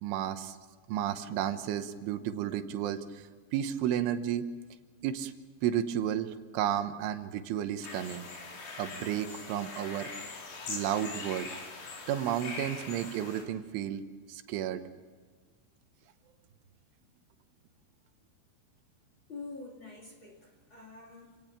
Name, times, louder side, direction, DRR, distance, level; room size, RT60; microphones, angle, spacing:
voice 1, 0.0-0.6 0.9-4.5 5.0-5.3 5.6-8.3 8.8-10.2 10.7-11.5 12.1-14.0 14.3-14.8, right 10 dB, 85° right, 9 dB, 3.6 m, -32 dB
sound 1, 7.8-13.4, left 3 dB, 50° left, 4.7 m, -42 dB
voice 2, 19.3-21.4, left 3 dB, 30° left, 1 dB, 2.6 m, -46 dB
28.5 x 18.0 x 5.9 m, 1.5 s
omnidirectional pair, 5.4 m